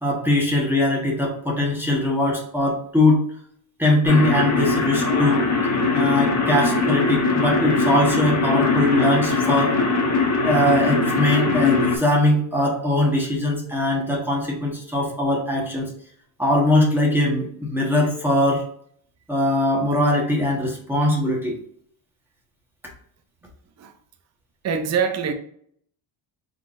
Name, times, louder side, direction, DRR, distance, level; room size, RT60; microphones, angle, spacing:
voice 1, 0.0-3.2 3.8-5.5 5.9-9.7 10.4-15.9 16.4-18.6 19.3-21.5, left 1 dB, 5° right, 1.3 m, -21 dB
sound 1, 4.0-12.0, left 3 dB, 35° left, 1.2 m, -21 dB
voice 2, 24.6-25.3, right 6 dB, 35° right, 0.6 m, -23 dB
4.5 x 3.9 x 2.5 m
cardioid pair, 110°, 46 cm